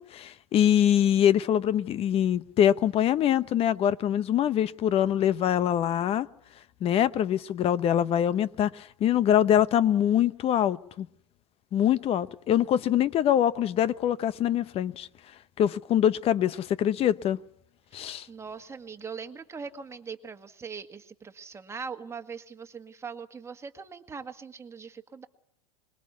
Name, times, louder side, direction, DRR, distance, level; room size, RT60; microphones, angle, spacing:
voice 1, 0.0-6.3 6.8-11.1 11.7-15.1 15.6-17.4 17.9-18.3, left 10 dB, 30° left, 1.0 m, -24 dB
voice 2, 17.9-25.3, right 5 dB, 15° right, 1.9 m, -41 dB
26.0 x 21.5 x 8.3 m
hypercardioid pair, 120°, 19 cm